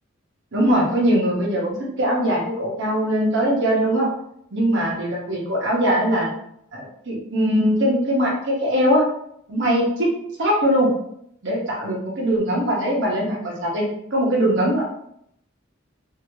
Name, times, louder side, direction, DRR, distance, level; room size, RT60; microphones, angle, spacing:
voice 1, 0.5-4.1 4.5-6.3 6.7-9.0 9.5-10.1 10.4-10.9 11.4-13.8 14.1-14.8, equal, 60° right, -3 dB, 1.1 m, -21 dB
3.0 x 2.8 x 2.8 m, 0.72 s
head